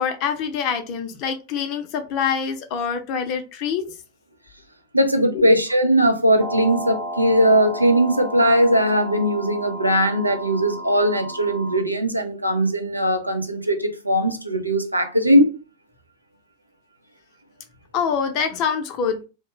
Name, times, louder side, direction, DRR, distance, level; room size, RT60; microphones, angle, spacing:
voice 1, 0.0-3.8 5.3-5.5 17.9-19.2, left 7 dB, 40° left, 0.6 m, -25 dB
voice 2, 4.9-15.5, equal, 85° right, 0.4 m, -19 dB
sound 1, 6.4-11.8, right 1 dB, 20° right, 0.6 m, -33 dB
2.4 x 2.1 x 3.0 m
figure-of-eight pair, 90°, 0 cm